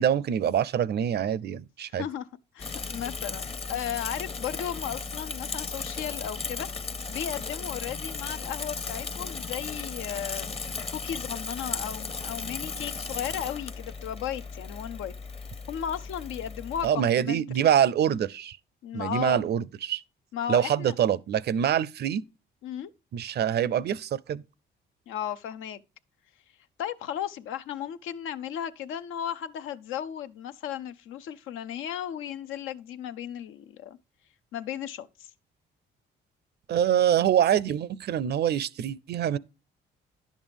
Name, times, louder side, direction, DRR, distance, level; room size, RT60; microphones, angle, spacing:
voice 1, 0.0-2.0 16.8-18.6 18.9-20.0 20.5-22.2 23.1-24.4 36.7-39.4, right 9 dB, 55° right, 0.5 m, -25 dB
voice 2, 1.9-2.3 2.5-10.5 10.9-15.1 15.7-17.6 18.8-19.4 20.3-20.9 22.6-22.9 25.1-25.8 26.8-34.0 34.5-35.3, left 10 dB, 85° left, 0.6 m, -35 dB
Bicycle / Mechanisms, 2.6-16.9, left 4 dB, 30° left, 0.7 m, -36 dB
10.5 x 7.3 x 3.4 m
cardioid pair, 90°, 20 cm